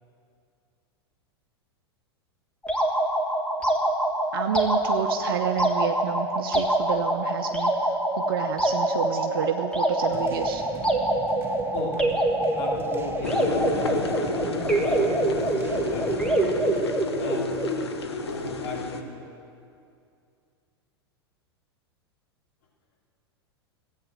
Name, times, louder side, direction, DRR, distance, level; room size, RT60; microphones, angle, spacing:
sound 1, 2.6-17.9, right 1 dB, 5° left, 1.7 m, -25 dB
voice 1, 4.3-10.6, right 8 dB, 60° right, 6 dB, 0.7 m, -30 dB
sound 2, 10.1-16.8, right 5 dB, 15° right, 1.0 m, -40 dB
voice 2, 12.5-15.5 15.8-16.1 16.7-17.9 18.2-19.5, left 3 dB, 50° left, -2 dB, 3.3 m, -37 dB
sound 3, 13.2-19.0, left 4 dB, 75° left, 1.1 m, -31 dB
15.0 x 8.4 x 7.7 m, 2.4 s
figure-of-eight pair, 90°, 14 cm